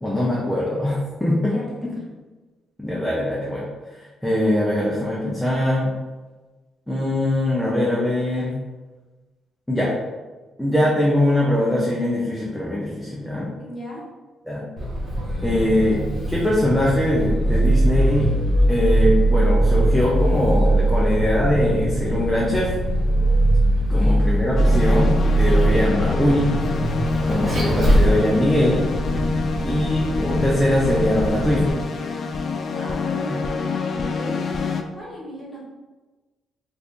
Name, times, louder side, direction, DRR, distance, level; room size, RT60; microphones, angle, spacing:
voice 1, 0.0-1.5 2.8-3.6 3.9-5.9 6.9-8.6 9.7-9.9 10.6-13.5 14.5-14.6 15.4-16.0 16.3-18.4 18.7-22.7 23.9-26.5 27.3-28.9 29.6-31.7, left 1 dB, 5° left, -5 dB, 0.6 m, -22 dB
voice 2, 1.4-1.8 13.6-14.0 23.9-24.2 29.5-29.8 31.5-31.7 32.8-33.4 33.9-34.7 34.9-35.6, equal, 20° left, -7 dB, 1.2 m, -37 dB
Vehicle, 14.8-31.7, right 1 dB, 35° right, 1.2 m, -21 dB
sound 1, 24.6-34.8, left 4 dB, 50° left, 0.3 m, -26 dB
2.6 x 2.6 x 3.6 m, 1.2 s
cardioid pair, 90°, 0 cm